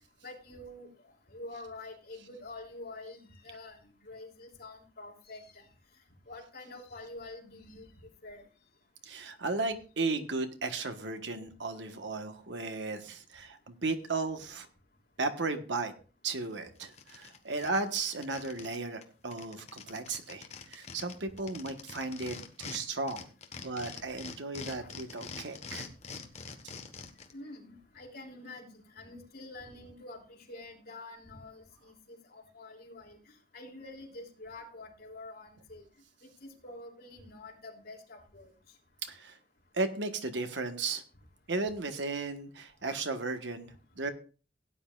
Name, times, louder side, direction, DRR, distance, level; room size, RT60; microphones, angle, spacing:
voice 1, 0.2-0.9 1.3-3.8 4.0-5.7 6.3-7.9 8.2-8.4 24.8-24.9 27.3-33.2 33.5-35.8 36.4-38.5, left 2 dB, 60° left, 0 dB, 3.1 m, -47 dB
voice 2, 9.0-14.7 15.2-15.9 16.2-23.2 23.6-25.9 39.0-39.4 39.7-41.0 41.5-44.1, right 3 dB, 80° right, 7 dB, 1.3 m, -35 dB
sound 1, 16.4-16.5 16.8-18.8 19.0-19.1 19.3-22.8 23.1-27.3, left 5 dB, 40° left, 1.3 m, -44 dB
17.0 x 9.9 x 2.4 m, 0.36 s
head